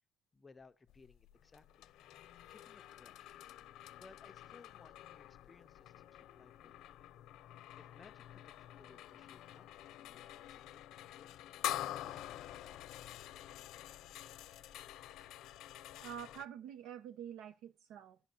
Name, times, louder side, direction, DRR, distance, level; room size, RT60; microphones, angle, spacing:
voice 1, 0.3-1.9 2.5-3.4 4.0-7.1 7.8-11.4 11.9-12.5, left 4 dB, 20° left, 0.6 m, -62 dB
sound 1, 0.9-16.4, left 13 dB, 70° left, 0.8 m, -47 dB
voice 2, 16.0-18.2, right 9 dB, 75° right, 0.8 m, -47 dB
12.0 x 5.7 x 4.4 m
cardioid pair, 160°, 0 cm